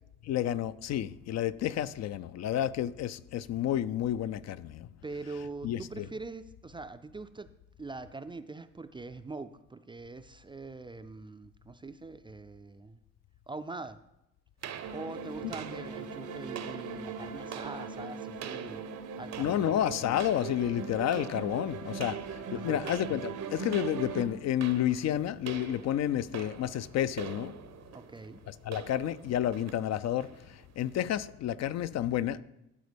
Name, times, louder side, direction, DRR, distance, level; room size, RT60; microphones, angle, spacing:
voice 1, 0.3-4.9 5.6-6.1 15.4-15.5 19.4-22.2 22.5-27.5 28.7-30.3 30.8-32.4, left 11 dB, 60° left, 0.4 m, -30 dB
voice 2, 5.0-7.5 7.8-13.0 13.5-14.0 14.9-18.8 19.2-19.7 22.5-22.8 27.9-28.4, right 3 dB, 15° right, 0.3 m, -43 dB
sound 1, 14.6-31.0, right 8 dB, 60° right, 0.7 m, -46 dB
sound 2, 14.8-24.3, right 5 dB, 85° right, 1.0 m, -40 dB
12.0 x 4.4 x 5.1 m
cardioid pair, 90°, 30 cm